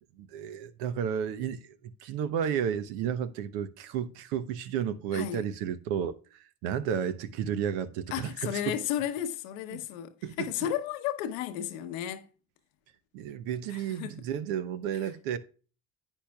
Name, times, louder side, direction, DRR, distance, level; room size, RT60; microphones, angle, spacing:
voice 1, 0.2-8.8 9.7-9.8 10.2-10.5 13.1-15.4, right 8 dB, 80° right, 0.9 m, -32 dB
voice 2, 5.1-5.4 8.1-12.3 13.7-14.2, left 10 dB, 90° left, 0.9 m, -33 dB
10.0 x 9.1 x 2.3 m
supercardioid pair, 65°, 39 cm